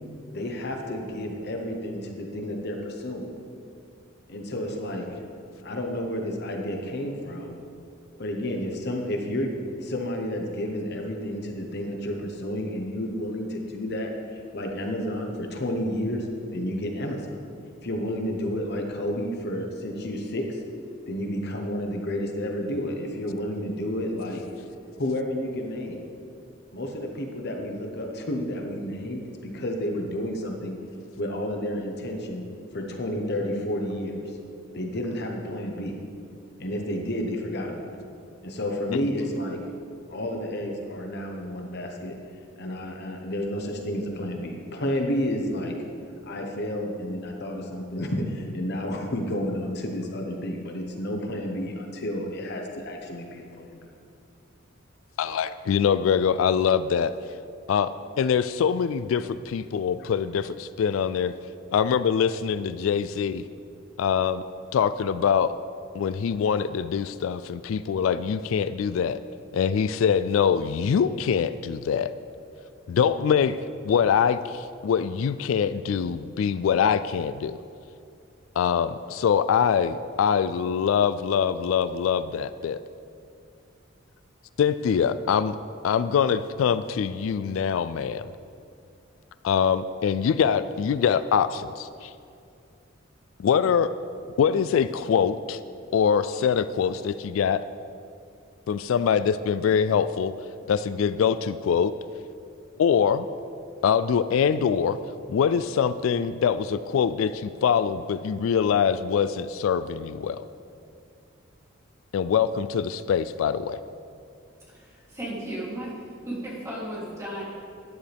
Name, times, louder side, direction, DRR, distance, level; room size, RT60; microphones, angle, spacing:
voice 1, 0.3-3.3 4.3-5.1 5.6-7.5 8.2-16.3 16.5-17.4 17.8-20.6 21.1-24.4 25.0-26.0 26.7-30.8 31.2-32.4 32.7-34.4 34.7-36.0 36.6-38.0 38.4-39.6 40.1-42.2 42.6-45.7 46.3-53.9 60.0-60.1, left 1 dB, 55° left, 2 dB, 1.1 m, -31 dB
voice 2, 55.2-57.1 57.7-57.9 58.2-61.3 61.7-63.4 64.0-64.4 64.7-65.6 65.9-69.2 69.5-72.1 72.9-77.6 78.6-82.8 84.6-85.6 85.8-88.3 89.4-92.1 93.4-93.9 94.4-95.6 95.9-97.6 98.7-100.3 100.7-101.9 102.8-103.3 103.8-105.0 105.3-110.5 112.1-113.8, left 7 dB, 80° left, 14 dB, 0.3 m, -24 dB
voice 3, 114.7-117.4, right 1 dB, 15° right, -7 dB, 3.0 m, -35 dB
12.0 x 10.5 x 3.5 m, 2.5 s
head